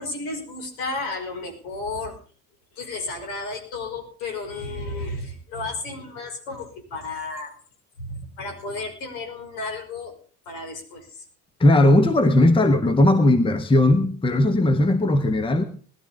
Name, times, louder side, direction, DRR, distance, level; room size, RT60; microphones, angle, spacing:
voice 1, 0.0-2.2 2.7-7.6 8.0-10.1 10.5-11.2, left 3 dB, 55° left, 3 dB, 5.5 m, -33 dB
voice 2, 11.6-15.6, left 1 dB, 10° left, 9 dB, 1.2 m, -18 dB
20.5 x 12.5 x 3.6 m, 0.42 s
figure-of-eight pair, 65°, 46 cm